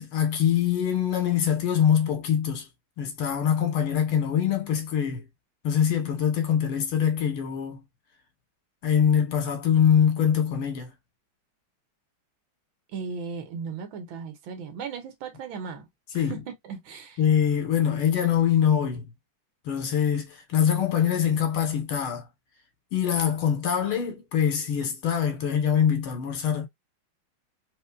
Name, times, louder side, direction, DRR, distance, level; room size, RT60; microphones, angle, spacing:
voice 1, 0.0-2.7 3.0-5.3 5.6-7.8 8.8-10.9 16.1-16.4 17.2-19.0 19.7-22.3 22.9-26.7, left 8 dB, 80° left, 2.0 m, -24 dB
voice 2, 12.9-15.9 16.1-16.4 16.7-17.2, right 5 dB, 75° right, 1.7 m, -36 dB
4.4 x 3.1 x 2.3 m
omnidirectional pair, 2.3 m